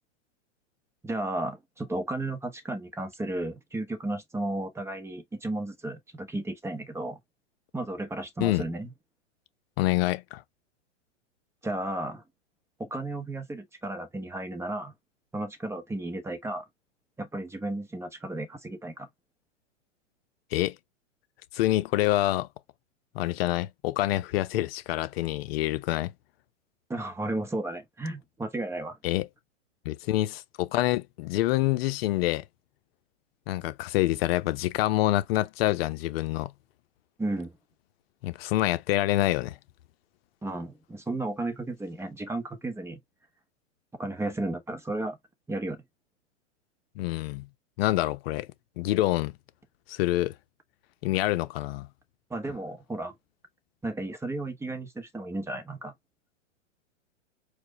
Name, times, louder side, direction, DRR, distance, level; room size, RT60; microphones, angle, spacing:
voice 1, 1.0-7.2 7.7-8.9 11.6-12.2 12.8-14.9 15.3-16.7 17.2-19.1 26.9-29.0 37.2-37.5 40.4-43.0 43.9-45.2 45.5-45.8 52.3-53.1 53.8-55.9, right 2 dB, 5° right, 1.0 m, -33 dB
voice 2, 9.8-10.4 20.5-20.8 21.5-22.5 23.1-26.1 29.0-29.3 29.8-32.4 33.5-36.5 38.2-39.6 47.0-47.5 47.8-48.5 48.8-49.3 49.9-50.3 51.0-51.9, left 16 dB, 50° left, 0.8 m, -26 dB
4.7 x 2.3 x 3.8 m
hypercardioid pair, 115°, 38 cm